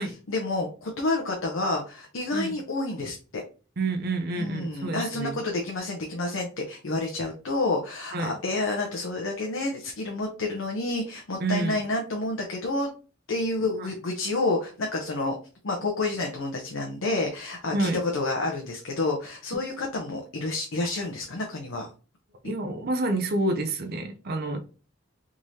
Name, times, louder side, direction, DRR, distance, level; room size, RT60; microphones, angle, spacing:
voice 1, 0.3-3.4 4.4-12.9 13.3-15.4 15.6-21.9, left 2 dB, 80° left, 0.7 m, -29 dB
voice 2, 3.8-5.4 8.1-8.3 11.4-11.8 13.6-13.9 17.7-18.0 22.4-24.6, right 2 dB, 50° right, 0.5 m, -28 dB
3.6 x 3.1 x 2.6 m
head